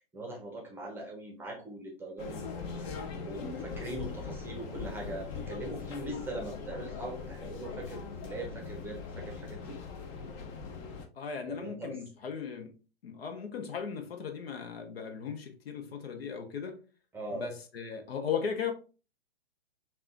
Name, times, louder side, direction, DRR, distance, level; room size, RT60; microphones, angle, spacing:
voice 1, 0.0-2.9 3.2-9.8 11.5-12.0 17.1-17.5, right 1 dB, 5° right, 0.7 m, -41 dB
sound 1, 2.2-11.0, left 4 dB, 30° left, 0.6 m, -41 dB
voice 2, 11.2-12.7 13.0-16.8 17.3-18.7, left 6 dB, 70° left, 0.9 m, -37 dB
5.5 x 2.4 x 2.5 m
hypercardioid pair, 130°, 31 cm